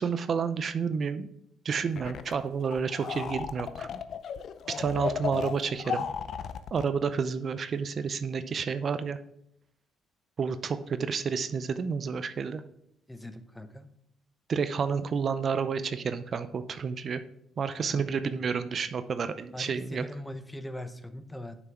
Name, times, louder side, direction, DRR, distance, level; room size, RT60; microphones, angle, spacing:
voice 1, 0.0-1.3 1.6-3.9 4.8-6.0 6.7-9.2 10.4-12.6 14.5-17.2 17.6-20.0, right 6 dB, 50° right, 11 dB, 0.5 m, -30 dB
sound 1, 2.0-2.4 2.6-6.9, left 7 dB, 65° left, 0.5 m, -35 dB
voice 2, 13.1-13.9 17.7-18.0 19.5-21.6, left 1 dB, 10° left, 10 dB, 0.8 m, -41 dB
7.5 x 6.0 x 4.6 m, 0.75 s
supercardioid pair, 65°, 0 cm